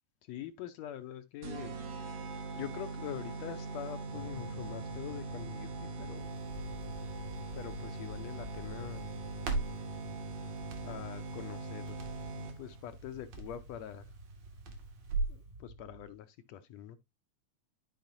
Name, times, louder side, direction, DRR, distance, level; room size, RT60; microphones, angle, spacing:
voice 1, 0.3-2.1 2.5-5.7 6.0-6.3 7.5-9.1 10.8-14.1 15.3-17.0, left 10 dB, 75° left, 1.7 m, -44 dB
sound 1, 1.4-12.8, right 3 dB, 60° right, 1.9 m, -42 dB
sound 2, 4.1-16.1, right 2 dB, 40° right, 1.0 m, -52 dB
Crackle, 6.2-15.4, right 3 dB, 80° right, 3.2 m, -41 dB
12.0 x 4.8 x 2.6 m
omnidirectional pair, 3.4 m